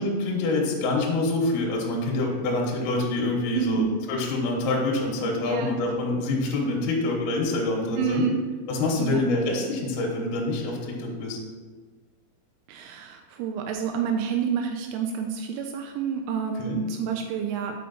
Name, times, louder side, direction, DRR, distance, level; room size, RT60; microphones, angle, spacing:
voice 1, 0.0-8.2 8.7-11.4 16.6-16.8, left 2 dB, 75° left, -2 dB, 3.0 m, -26 dB
voice 2, 3.5-3.9 4.6-4.7 5.4-5.7 8.0-8.4 9.0-9.3 12.7-17.8, right 7 dB, 85° right, 3 dB, 2.7 m, -28 dB
6.2 x 5.7 x 4.1 m, 1.4 s
omnidirectional pair, 5.9 m